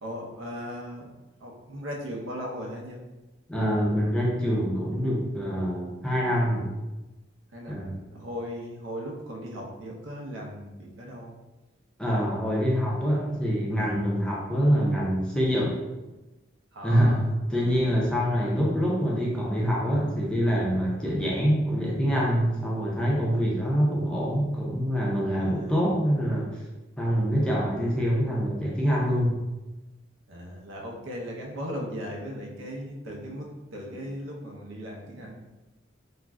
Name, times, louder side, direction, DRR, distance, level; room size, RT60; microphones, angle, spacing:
voice 1, 0.0-1.1 1.4-3.0 7.5-11.3 16.7-17.3 25.3-25.7 30.3-35.5, equal, 75° right, -1 dB, 0.5 m, -37 dB
voice 2, 3.5-6.7 7.7-8.0 12.0-15.8 16.8-17.2 17.5-26.5 27.0-29.3, equal, 5° left, -4 dB, 0.4 m, -25 dB
2.4 x 2.1 x 3.4 m, 1.1 s
head